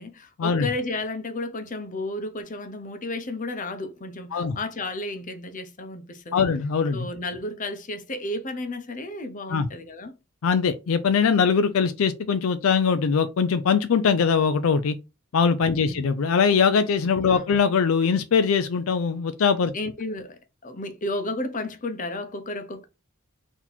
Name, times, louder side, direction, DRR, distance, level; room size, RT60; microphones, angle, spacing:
voice 1, 0.0-6.4 6.9-10.2 15.7-16.0 17.2-17.5 19.7-22.9, left 2 dB, 40° left, 0.8 m, -33 dB
voice 2, 6.3-7.1 9.5-9.7 10.4-15.0 15.3-19.7, left 6 dB, 70° left, 0.4 m, -22 dB
4.1 x 2.9 x 4.1 m
head